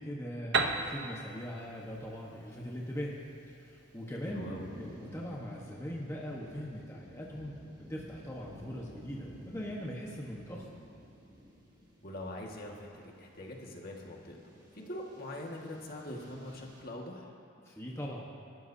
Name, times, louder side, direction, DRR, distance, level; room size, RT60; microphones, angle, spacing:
voice 1, 0.0-3.2 3.5-4.5 4.8-7.6 7.9-10.7 17.6-18.3, equal, 15° left, -3 dB, 1.2 m, -41 dB
Piano, 0.5-4.2, right 4 dB, 65° right, 0.9 m, -35 dB
sound 1, 0.8-16.8, equal, 20° right, 2.7 m, -53 dB
voice 2, 4.3-4.7 12.0-17.3, left 1 dB, 50° left, -1 dB, 1.8 m, -43 dB
29.5 x 13.0 x 2.8 m, 2.5 s
head